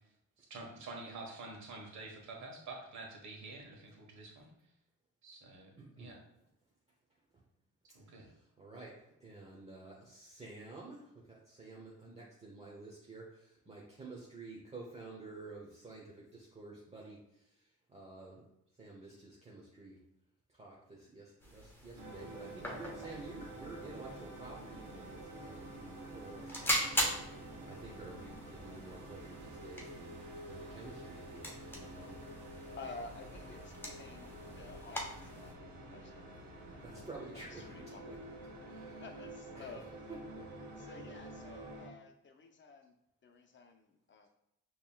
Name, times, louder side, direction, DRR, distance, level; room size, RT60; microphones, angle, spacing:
voice 1, 0.4-4.5 5.2-5.7 6.0-6.2 7.9-8.3, right 3 dB, 70° right, 0 dB, 1.4 m, -48 dB
voice 2, 5.8-6.1 8.6-8.9 9.2-11.0 11.3-17.2 17.9-18.4 18.8-20.0 20.6-30.1 30.5-32.2 36.8-38.2 38.7-39.1 39.5-39.7 40.1-40.2, right 3 dB, 20° right, -4 dB, 0.9 m, -50 dB
sound 1, 21.4-35.5, equal, 5° left, 0.9 m, -42 dB
sound 2, 22.0-41.9, right 1 dB, 85° right, 0.9 m, -49 dB
voice 3, 32.7-36.3 36.7-37.1 37.3-38.0 38.6-39.9 40.8-42.9 43.2-44.3, left 3 dB, 40° left, 5 dB, 0.7 m, -52 dB
5.2 x 3.0 x 2.3 m, 0.81 s
cardioid pair, 90°, 30 cm